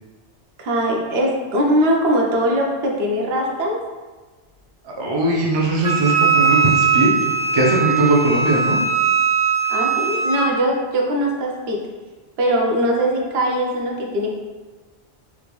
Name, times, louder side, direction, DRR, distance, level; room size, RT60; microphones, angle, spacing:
voice 1, 0.6-3.8 9.7-11.8 12.4-14.3, equal, 65° right, -1 dB, 0.8 m, -21 dB
voice 2, 4.8-7.2 7.5-8.8, right 2 dB, 40° right, -3 dB, 0.4 m, -19 dB
Wind instrument woodwind instrument, 5.8-10.4, right 6 dB, 85° right, 1.6 m, -19 dB
3.4 x 2.5 x 3.1 m, 1.3 s
omnidirectional pair, 1.2 m